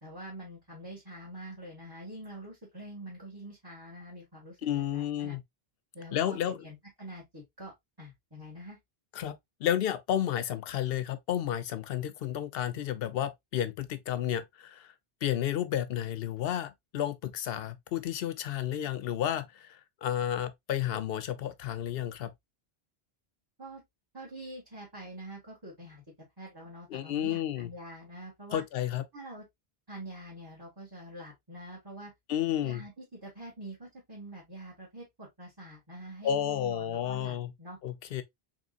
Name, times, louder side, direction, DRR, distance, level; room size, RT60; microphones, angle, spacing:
voice 1, 0.0-5.4 5.9-8.8 23.6-23.8 24.1-26.0 26.4-28.6 29.1-29.5 29.9-32.1 32.6-37.8, right 1 dB, 25° right, 1.9 m, -45 dB
voice 2, 4.6-5.4 6.1-6.6 9.1-14.9 15.2-22.3 26.9-27.7 28.5-29.0 32.3-32.8 36.2-37.5 37.8-38.2, left 10 dB, 70° left, 0.8 m, -31 dB
3.8 x 3.6 x 2.4 m
omnidirectional pair, 1.0 m